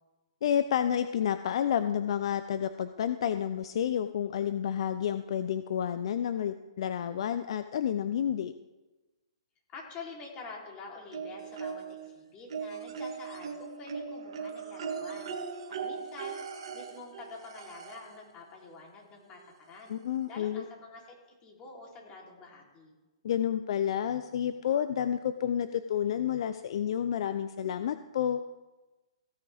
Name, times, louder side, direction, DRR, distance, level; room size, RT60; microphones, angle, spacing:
voice 1, 0.4-8.5 19.9-20.6 23.2-28.4, left 9 dB, 60° left, 11 dB, 0.6 m, -30 dB
voice 2, 9.7-15.3 15.7-16.4 16.7-19.9 20.3-22.9, left 4 dB, 30° left, -2 dB, 3.5 m, -47 dB
sound 1, 11.1-12.1 12.5-18.2 19.4-19.5 19.9-20.0, right 6 dB, 65° right, 1.8 m, -39 dB
16.0 x 9.4 x 3.5 m, 1.1 s
hypercardioid pair, 135°, 3 cm